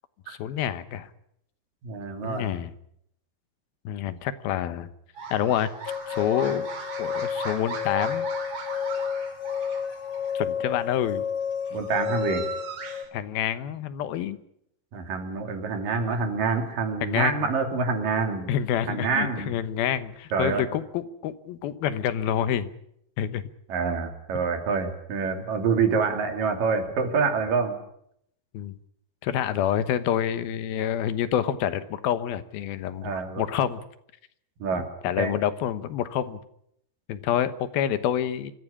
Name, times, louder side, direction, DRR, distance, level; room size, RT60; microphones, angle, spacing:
voice 1, 0.3-1.1 2.2-2.7 3.8-4.9 5.3-5.7 6.1-6.7 7.0-8.3 10.3-11.2 13.1-14.4 17.0-17.4 18.5-22.7 23.2-23.4 28.5-28.8 29.2-33.8 34.7-36.4 37.1-38.5, left 10 dB, 90° left, 12 dB, 3.1 m, -27 dB
voice 2, 1.8-2.5 11.7-12.4 14.9-18.5 18.9-19.5 20.3-20.6 23.7-27.8 33.0-33.4 34.6-34.9 35.2-35.4, right 5 dB, 65° right, 5 dB, 4.5 m, -26 dB
sound 1, 5.1-10.4 11.4-13.1, right 5 dB, 50° right, 3.8 m, -38 dB
sound 2, 5.9-13.1, left 7 dB, 65° left, 3.9 m, -31 dB
25.0 x 15.0 x 10.0 m, 0.75 s
omnidirectional pair, 4.2 m